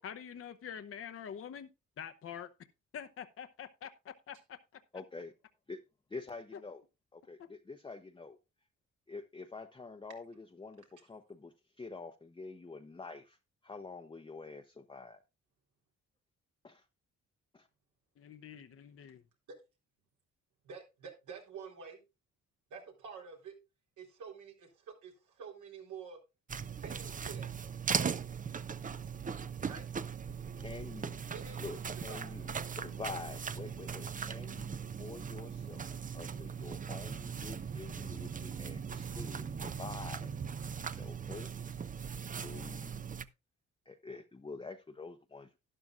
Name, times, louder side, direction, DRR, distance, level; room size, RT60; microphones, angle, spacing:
voice 1, 0.0-1.7 2.0-2.5 2.9-4.6 6.5-6.6 7.4-7.5 18.2-19.2, left 8 dB, 50° left, 0.8 m, -46 dB
voice 2, 4.9-5.3 5.7-5.8 6.1-6.8 7.1-8.4 9.1-13.4 13.6-15.2 16.6-16.8 17.5-17.7 30.6-31.2 31.6-35.9 36.1-40.3 40.8-41.5 42.4-43.0 43.9-45.6, left 4 dB, 15° left, 0.8 m, -47 dB
voice 3, 20.6-22.0 22.7-23.6 24.0-26.2 26.8-27.8 29.7-29.8 31.3-32.4, right 6 dB, 75° right, 3.8 m, -48 dB
sound 1, 26.5-43.2, right 6 dB, 25° right, 0.6 m, -39 dB
12.0 x 11.0 x 2.4 m
cardioid pair, 90°, 30 cm